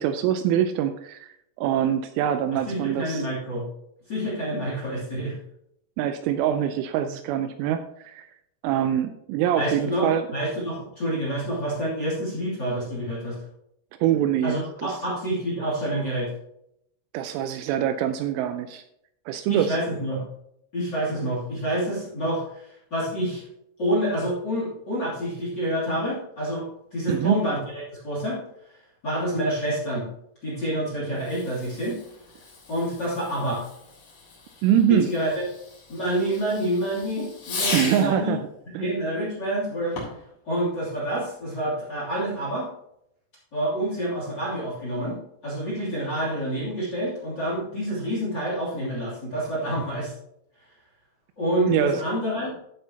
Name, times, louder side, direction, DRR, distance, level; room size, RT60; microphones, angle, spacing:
voice 1, 0.0-1.3 1.6-3.3 6.0-8.3 8.6-10.2 14.0-15.0 17.1-18.8 19.3-19.8 27.1-27.4 34.6-35.1 37.7-38.4 38.7-38.9 51.7-52.0, right 10 dB, 85° right, 9 dB, 2.9 m, -24 dB
voice 2, 2.7-3.7 4.1-5.4 9.6-13.4 14.4-16.3 19.5-20.2 20.7-23.4 23.8-27.6 28.0-28.4 29.0-30.1 30.4-32.0 32.7-33.6 34.9-35.4 35.9-38.3 38.8-40.0 40.5-42.7 43.5-45.2 45.4-50.1 51.4-52.6, right 1 dB, 30° left, -5 dB, 2.4 m, -27 dB
Fireworks, 31.1-38.2 39.9-40.3, left 3 dB, 55° left, 5.6 m, -37 dB
13.5 x 7.8 x 2.9 m, 0.77 s
omnidirectional pair, 5.9 m